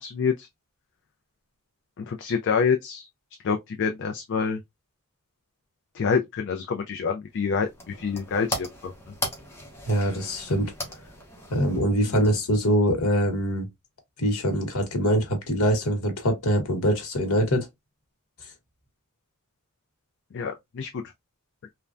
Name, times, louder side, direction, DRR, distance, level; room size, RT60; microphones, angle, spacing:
voice 1, 0.0-0.5 2.0-3.1 3.4-4.6 5.9-8.9 20.3-21.0, left 5 dB, 55° left, 0.4 m, -27 dB
sound 1, 7.3-12.7, left 1 dB, 10° left, 0.8 m, -38 dB
voice 2, 9.9-10.7 11.5-13.7 14.2-17.7, equal, 85° left, 1.1 m, -23 dB
3.2 x 2.2 x 2.4 m
head